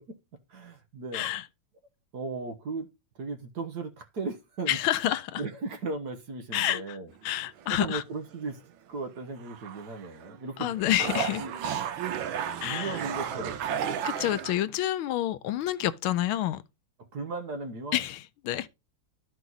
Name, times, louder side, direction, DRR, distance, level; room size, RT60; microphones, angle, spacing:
voice 1, 0.5-1.3 2.1-2.9 3.2-4.8 5.4-7.1 7.7-8.6 8.9-10.7 11.1-11.5 12.6-13.7 17.0-18.0, right 3 dB, 55° right, 1.5 m, -36 dB
voice 2, 1.1-1.4 4.7-5.4 6.5-7.0 7.2-8.0 10.6-11.4 12.6-12.9 14.0-16.6 17.9-18.7, left 13 dB, 85° left, 1.5 m, -28 dB
sound 1, 7.1-7.8 8.3-8.4 9.4-10.4 10.6-14.6, right 8 dB, 75° right, 1.6 m, -33 dB
12.5 x 4.7 x 4.0 m
omnidirectional pair, 2.3 m